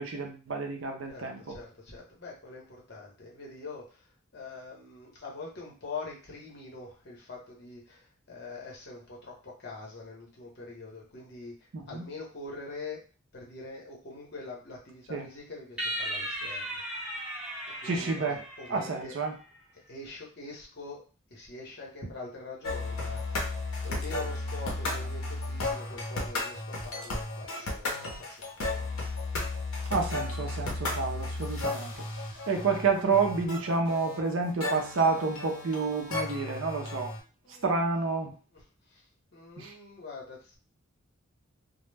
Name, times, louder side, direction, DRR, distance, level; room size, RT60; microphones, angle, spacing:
voice 1, 0.0-1.6 11.7-12.0 15.1-15.3 17.8-18.4 18.7-19.3 29.9-31.9 32.5-37.1 37.6-38.3 39.6-39.7, right 4 dB, 65° right, 3 dB, 0.5 m, -29 dB
voice 2, 1.1-4.0 4.3-13.0 13.3-16.8 17.8-19.2 19.9-21.0 21.3-28.9 37.4-37.9 38.5-38.6 38.9-39.0 39.3-40.6, left 3 dB, 50° left, -2 dB, 0.8 m, -44 dB
sound 1, 15.8-19.3, equal, 5° right, 0.6 m, -36 dB
Bit Forest Intro music, 22.6-37.2, left 2 dB, 85° left, 0.7 m, -34 dB
2.1 x 2.0 x 3.2 m, 0.36 s
head